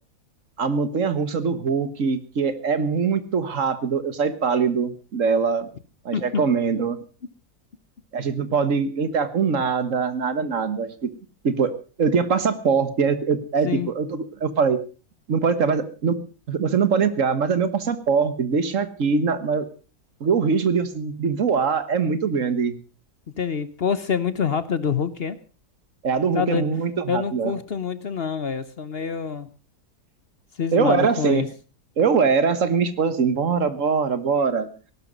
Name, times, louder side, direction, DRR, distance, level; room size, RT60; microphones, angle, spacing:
voice 1, 0.6-5.7 6.0-7.0 8.1-11.1 11.4-11.7 12.0-14.8 15.3-16.2 16.5-19.7 20.2-22.8 26.0-27.5 30.7-31.4 32.0-34.7, right 5 dB, 55° right, 12 dB, 1.6 m, -22 dB
voice 2, 23.4-25.4 26.3-26.7 27.1-29.5 30.5-31.5, left 6 dB, 45° left, 14 dB, 0.9 m, -26 dB
18.0 x 12.0 x 5.3 m, 0.36 s
omnidirectional pair, 1.7 m